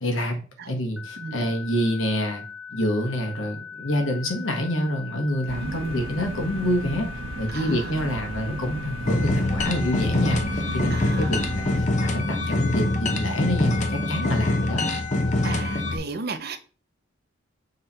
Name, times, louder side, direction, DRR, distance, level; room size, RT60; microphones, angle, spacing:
voice 1, 0.0-0.4 0.7-2.4 2.7-7.1 7.4-14.8, equal, 80° left, 1.5 m, -27 dB
sound 1, 1.0-15.9, left 7 dB, 5° right, 0.4 m, -40 dB
voice 2, 1.2-1.5 5.6-6.2 7.5-8.0 10.9-11.4 15.4-16.6, right 4 dB, 55° right, 0.7 m, -35 dB
sound 2, 5.5-11.8, right 2 dB, 85° right, 1.1 m, -35 dB
sound 3, 9.1-16.0, left 2 dB, 40° left, 0.8 m, -24 dB
6.7 x 3.3 x 4.3 m
head